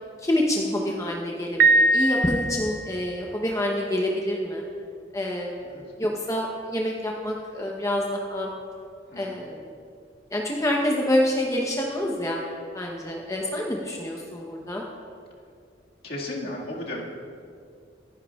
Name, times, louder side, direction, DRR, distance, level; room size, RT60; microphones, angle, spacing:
voice 1, 0.2-4.6 5.1-8.5 9.2-9.7 10.3-12.4 12.7-14.8, left 1 dB, 20° left, -1 dB, 0.9 m, -27 dB
Piano, 1.6-3.0, right 2 dB, 55° right, 0.5 m, -21 dB
voice 2, 9.1-9.4 16.0-17.0, left 1 dB, 60° left, -3 dB, 2.0 m, -34 dB
24.5 x 10.0 x 2.4 m, 2.3 s
head